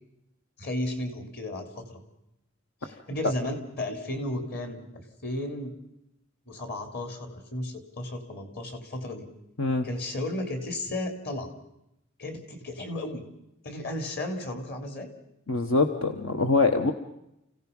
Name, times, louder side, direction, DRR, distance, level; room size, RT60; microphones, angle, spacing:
voice 1, 0.6-2.0 2.8-5.8 6.5-9.3 9.8-11.5 12.2-13.2 13.6-15.1, left 1 dB, 50° left, 5 dB, 3.6 m, -34 dB
voice 2, 15.5-16.9, left 3 dB, 80° left, 6 dB, 1.4 m, -24 dB
29.5 x 17.0 x 5.5 m, 0.83 s
head